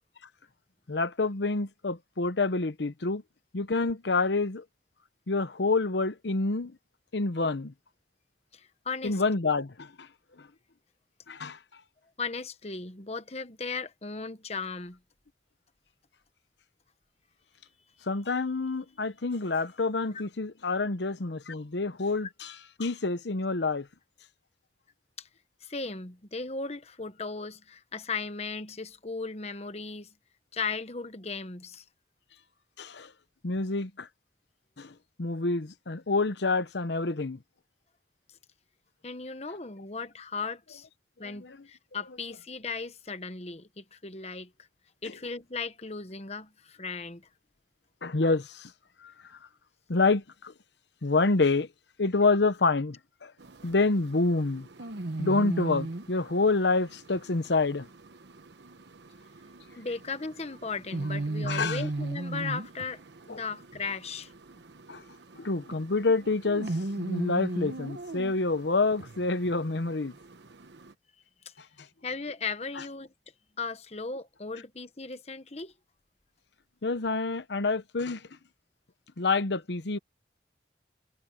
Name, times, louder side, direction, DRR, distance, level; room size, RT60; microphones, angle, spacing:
voice 1, 0.9-3.2 3.5-4.6 5.3-6.8 7.1-7.7 9.0-10.1 11.3-11.6 18.1-23.9 32.8-33.1 33.4-34.1 34.8-37.4 41.2-41.6 48.0-48.7 49.0-49.1 49.9-50.5 51.0-51.7 52.0-53.3 53.6-54.7 55.2-57.9 61.5-61.8 63.3-63.4 64.9-65.0 65.4-66.7 67.0-70.1 72.8-72.9 76.8-78.2 79.2-80.0, left 3 dB, 80° left, 0.9 m, -27 dB
voice 2, 8.5-9.2 12.2-15.0 25.2-25.3 25.6-30.1 30.5-31.8 39.0-40.9 41.2-44.5 45.0-47.3 59.8-63.0 63.3-64.3 71.4-71.5 72.0-73.1 73.6-75.7, left 4 dB, 35° left, 1.2 m, -36 dB
sound 1, 53.4-70.9, right 2 dB, 85° right, 1.1 m, -38 dB
head